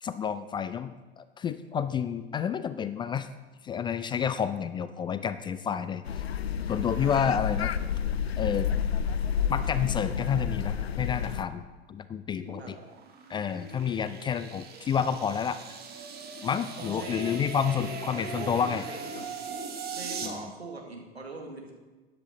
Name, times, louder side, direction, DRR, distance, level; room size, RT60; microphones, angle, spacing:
voice 1, 0.0-3.3 3.6-6.0 6.7-7.7 8.4-8.7 9.5-12.8 13.3-15.6 16.4-18.8 20.2-20.5, left 7 dB, 15° left, 12 dB, 0.3 m, -30 dB
sound 1, 6.1-11.4, left 8 dB, 80° left, 0.5 m, -30 dB
sound 2, 12.3-20.3, right 5 dB, 30° right, 1.9 m, -40 dB
voice 2, 16.8-19.2 19.9-21.7, right 2 dB, 85° right, 0 dB, 1.9 m, -41 dB
13.0 x 9.9 x 3.9 m, 1.3 s
figure-of-eight pair, 75°, 31 cm